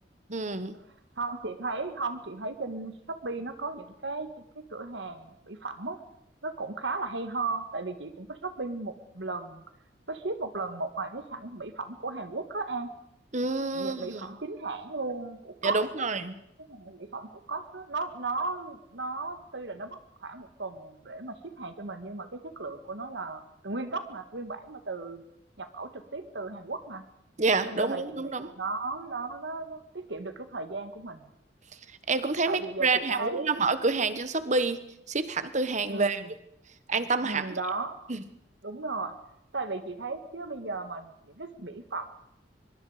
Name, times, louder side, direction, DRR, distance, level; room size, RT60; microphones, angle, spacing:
voice 1, 0.3-0.7 13.3-14.2 15.6-16.4 27.4-28.5 32.1-34.8 35.1-36.2 36.9-37.5 38.1-38.2, right 3 dB, 40° right, 12 dB, 1.3 m, -28 dB
voice 2, 1.2-6.0 6.4-9.6 10.1-12.9 13.7-16.1 16.6-25.2 25.6-27.0 27.7-31.3 32.5-33.6 35.9-36.3 37.2-38.1 38.6-39.2 39.5-42.1, right 3 dB, 75° right, 9 dB, 1.8 m, -36 dB
23.5 x 23.0 x 5.0 m, 0.80 s
head